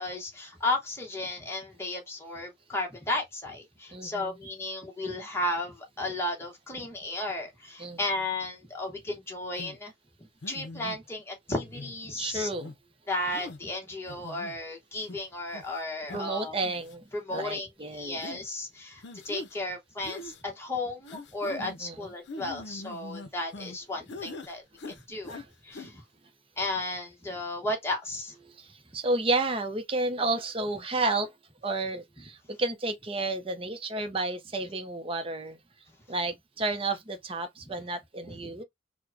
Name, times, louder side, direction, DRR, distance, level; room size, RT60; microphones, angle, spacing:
voice 1, 0.0-9.9 10.5-12.5 13.1-16.5 17.1-24.6 25.1-26.0 26.6-28.3 38.3-38.5, left 2 dB, 15° left, 1.0 m, -34 dB
voice 2, 3.9-4.3 7.8-8.0 12.2-12.7 16.1-17.0 17.3-18.2 21.6-22.1 25.3-25.5 28.4-31.3 31.6-35.6 36.1-38.6, right 2 dB, 30° right, 0.6 m, -31 dB
sound 1, 9.6-9.8 10.4-11.0 11.5-12.0 12.5-12.8 13.3-13.6 14.1-14.5 15.1-15.2 15.5-15.7 16.1-16.2 16.6-17.0 17.3-17.5 18.2-18.4 19.0-19.5 20.0-20.4 21.1-21.8 22.3-23.8 24.1-24.5 24.8-25.4 25.7-25.9, left 2 dB, 70° left, 0.6 m, -42 dB
4.7 x 2.1 x 2.6 m
head